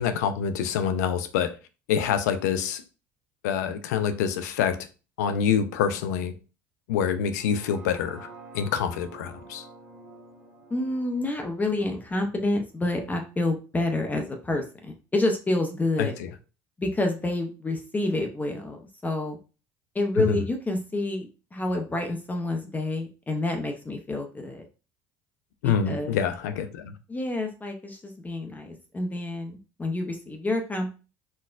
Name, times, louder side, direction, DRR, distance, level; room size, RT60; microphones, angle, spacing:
voice 1, 0.0-1.5 1.9-2.8 3.4-4.8 5.2-6.3 6.9-8.3 8.5-9.6 16.0-16.3 20.3-20.4 25.6-26.9, left 7 dB, 85° left, 0.4 m, -26 dB
sound 1, 7.3-13.4 13.9-14.0, right 3 dB, 45° right, 1.2 m, -49 dB
voice 2, 10.7-16.1 16.8-19.4 19.9-24.7 25.6-26.2 27.1-30.9, left 2 dB, 20° left, 0.6 m, -28 dB
4.2 x 2.1 x 2.4 m
supercardioid pair, 80°, 9 cm